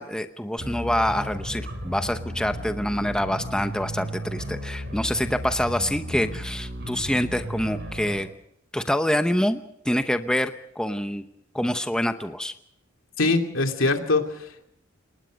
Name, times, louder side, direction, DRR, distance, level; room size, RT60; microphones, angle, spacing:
voice 1, 0.0-8.3 8.7-11.2 11.5-12.5, left 1 dB, 5° left, 8 dB, 0.8 m, -26 dB
sound 1, 0.6-8.2, equal, 60° right, 6.6 m, -34 dB
voice 2, 13.2-14.7, left 3 dB, 75° left, 4 dB, 2.7 m, -23 dB
29.5 x 19.0 x 5.2 m, 0.75 s
head